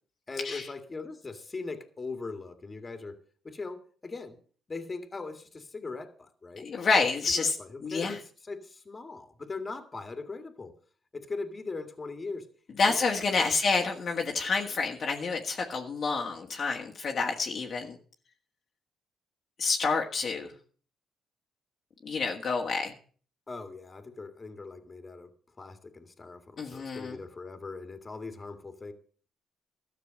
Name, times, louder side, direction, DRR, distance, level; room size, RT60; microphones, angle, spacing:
voice 1, 0.3-3.2 3.4-4.4 4.7-6.7 7.4-10.7 11.1-12.5 12.8-13.0 13.3-13.5 23.5-25.3 25.6-28.9, left 3 dB, 25° left, 7 dB, 2.2 m, -40 dB
voice 2, 6.6-7.5 7.8-8.2 12.8-18.0 19.6-20.5 22.0-22.9 26.6-27.2, left 4 dB, 50° left, 0 dB, 1.7 m, -28 dB
13.5 x 6.7 x 7.7 m, 0.44 s
cardioid pair, 90°, 0 cm